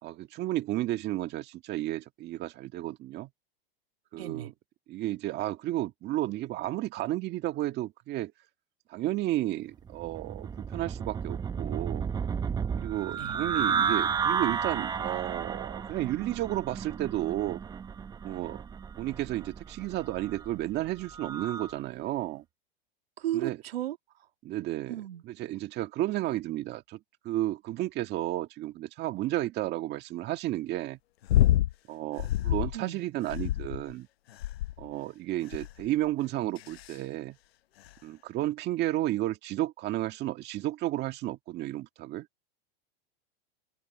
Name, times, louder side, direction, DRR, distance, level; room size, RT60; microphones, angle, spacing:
voice 1, 0.0-3.3 4.1-4.5 4.9-8.3 8.9-12.0 12.8-17.6 18.2-18.6 19.0-22.4 23.3-23.6 24.4-27.0 27.2-31.0 31.9-34.1 34.8-37.4 38.0-42.3, right 15 dB, 35° right, 1.7 m, -32 dB
voice 2, 4.1-4.5 13.1-13.4 23.2-24.0 24.9-25.2 32.7-33.0, right 13 dB, 85° right, 2.3 m, -34 dB
sound 1, 9.9-21.7, right 6 dB, 15° right, 0.7 m, -33 dB
sound 2, 31.3-31.7 32.2-32.8 33.3-33.9 34.4-34.9 35.5-35.9 36.6-36.9 37.9-38.0, left 13 dB, 85° left, 0.9 m, -26 dB
open air
supercardioid pair, 135°, 30 cm